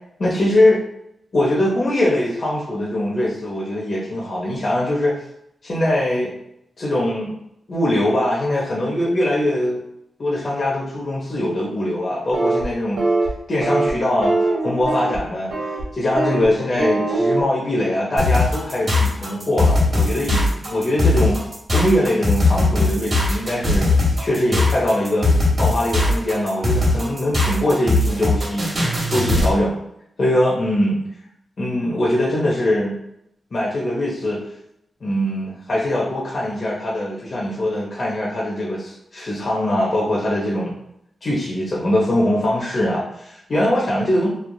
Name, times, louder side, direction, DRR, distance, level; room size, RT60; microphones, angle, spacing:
voice 1, 0.2-0.8 1.3-5.2 5.6-6.3 6.8-7.4 7.7-9.8 10.2-13.0 13.5-14.3 14.6-15.5 15.9-21.4 21.7-29.7 30.2-31.1 31.6-33.0 33.5-34.4 35.0-40.8 41.2-44.3, left 1 dB, 45° left, -5 dB, 0.6 m, -22 dB
sound 1, 12.3-12.6 13.0-13.3 13.6-13.9 14.2-15.2 15.5-15.8 16.1-16.5 16.8-17.4, right 2 dB, 85° right, 0.7 m, -21 dB
sound 2, 18.2-29.5, left 2 dB, 45° right, 1.1 m, -19 dB
3.1 x 2.4 x 2.2 m, 0.75 s
wide cardioid pair, 95°, 0 cm